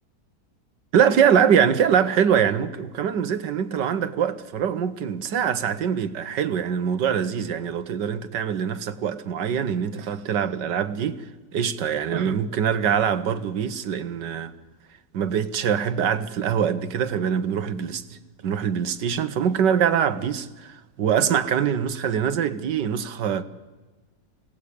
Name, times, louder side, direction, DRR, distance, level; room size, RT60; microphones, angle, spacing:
voice 1, 0.9-11.2 11.5-14.5 15.1-18.2 18.4-23.4, right 8 dB, 80° right, 1.8 m, -23 dB
26.0 x 18.0 x 8.6 m
omnidirectional pair, 1.8 m